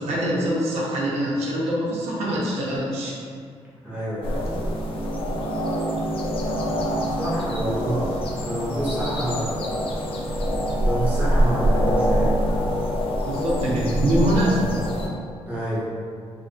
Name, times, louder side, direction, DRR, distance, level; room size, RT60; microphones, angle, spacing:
voice 1, 0.0-3.1 13.2-14.8, right 1 dB, 85° right, -5 dB, 0.7 m, -24 dB
voice 2, 3.8-4.5 7.1-8.1 8.4-9.5 10.8-12.3 15.5-15.8, equal, 15° right, -9 dB, 0.9 m, -27 dB
sound 1, 4.2-15.1, equal, 55° left, 0.4 m, -25 dB
2.5 x 2.5 x 2.4 m, 2.2 s
cardioid pair, 125°, 11 cm